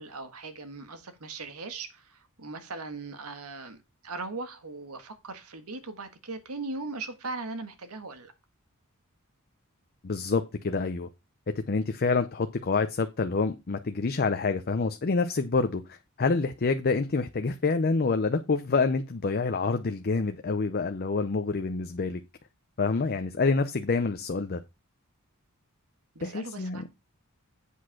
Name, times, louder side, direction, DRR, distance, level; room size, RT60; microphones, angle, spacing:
voice 1, 0.0-3.8 4.0-8.3 26.1-26.9, right 3 dB, 90° right, 1.5 m, -39 dB
voice 2, 10.0-11.1 11.7-22.2 22.8-24.6 26.2-26.8, left 4 dB, 45° left, 0.6 m, -27 dB
8.2 x 5.0 x 5.8 m
head